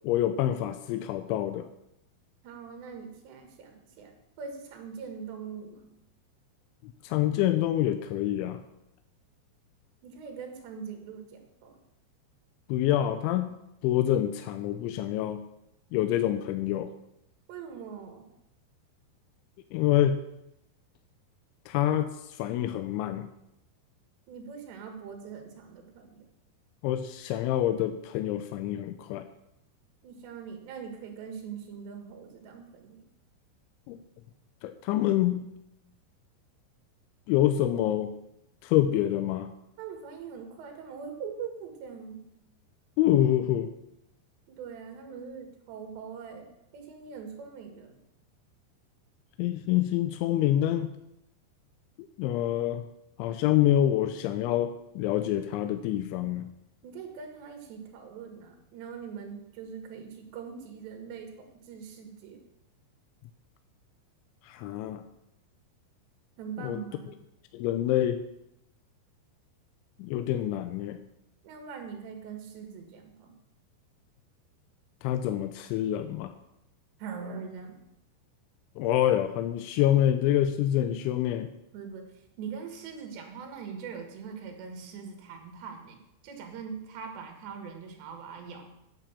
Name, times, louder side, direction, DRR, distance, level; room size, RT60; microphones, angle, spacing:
voice 1, 0.0-1.7 6.8-8.6 12.7-13.6 13.8-15.4 15.9-16.9 19.7-20.2 21.7-23.3 26.8-29.3 33.9-34.0 34.6-35.5 37.3-38.1 38.6-39.5 43.0-43.7 49.4-50.9 52.2-52.9 53.2-56.5 64.4-65.0 66.6-66.8 67.5-68.2 70.0-71.0 75.0-76.3 78.8-81.5, left 12 dB, 85° left, 8 dB, 3.0 m, -26 dB
voice 2, 2.4-5.9 10.0-11.8 17.5-18.3 24.3-26.3 30.0-33.1 39.8-42.3 44.5-46.5 46.7-48.0 56.8-62.4 66.4-67.1 71.4-73.3 77.0-77.9 81.7-86.0 86.2-88.8, right 6 dB, 70° right, 4 dB, 3.8 m, -42 dB
8.9 x 8.4 x 7.2 m, 0.82 s
omnidirectional pair, 5.4 m